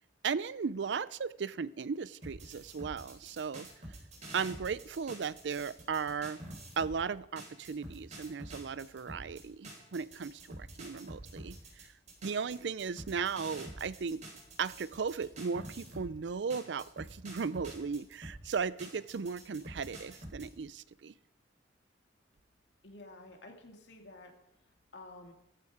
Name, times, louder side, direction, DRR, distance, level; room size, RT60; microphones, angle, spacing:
voice 1, 0.2-3.7 4.3-6.4 6.8-11.9 12.2-14.2 14.6-21.1, right 5 dB, 80° right, 19 dB, 0.5 m, -36 dB
sound 1, 2.2-7.0 7.4-16.1 16.5-20.5, right 1 dB, 40° right, 4.2 m, -47 dB
voice 2, 22.8-24.3 24.9-25.3, left 2 dB, 80° left, 3 dB, 2.5 m, -51 dB
14.5 x 13.5 x 4.9 m, 0.84 s
head